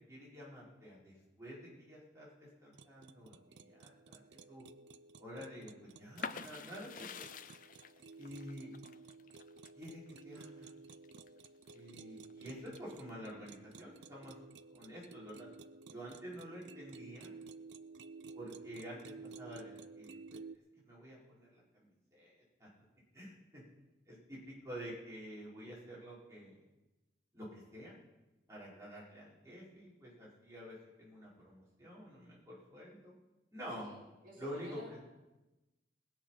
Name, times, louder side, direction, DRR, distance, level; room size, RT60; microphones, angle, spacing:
voice 1, 0.1-4.6 5.2-7.3 8.2-8.7 9.8-10.7 11.7-14.4 14.7-15.5 15.9-17.3 18.3-20.4 20.8-22.3 22.6-22.7 23.1-23.6 24.1-26.6 27.3-28.0 28.5-33.1 33.5-33.9 34.4-35.0, equal, 15° right, -7 dB, 4.8 m, -49 dB
sound 1, 2.7-20.6, right 4 dB, 85° right, 0.6 m, -54 dB
sound 2, 6.2-11.8 12.2-13.1, left 6 dB, 45° left, 0.6 m, -48 dB
voice 2, 33.8-35.0, right 1 dB, 50° right, -4 dB, 3.4 m, -54 dB
20.0 x 8.5 x 5.8 m, 1.0 s
head